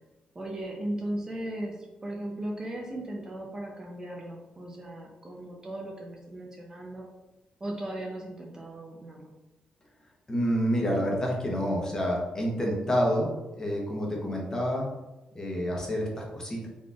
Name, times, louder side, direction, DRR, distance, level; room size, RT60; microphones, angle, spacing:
voice 1, 0.3-7.1 7.6-9.3, right 1 dB, 25° right, -1 dB, 0.7 m, -37 dB
voice 2, 10.3-14.8 15.3-16.7, equal, 25° left, -2 dB, 1.1 m, -28 dB
4.0 x 3.1 x 2.5 m, 1.0 s
cardioid pair, 85°, 3 cm